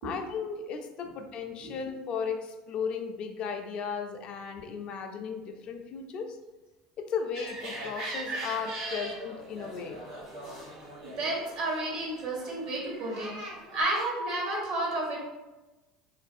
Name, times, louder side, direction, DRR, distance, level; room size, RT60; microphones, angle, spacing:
voice 1, 0.0-6.4 7.0-10.0, left 6 dB, 50° left, 5 dB, 0.3 m, -35 dB
sound 1, 7.3-13.8, right 2 dB, 80° right, 1.0 m, -41 dB
voice 2, 11.0-13.3 13.7-15.2, right 2 dB, 55° right, -3 dB, 1.0 m, -31 dB
2.5 x 2.4 x 2.4 m, 1.1 s
supercardioid pair, 95°, 2 cm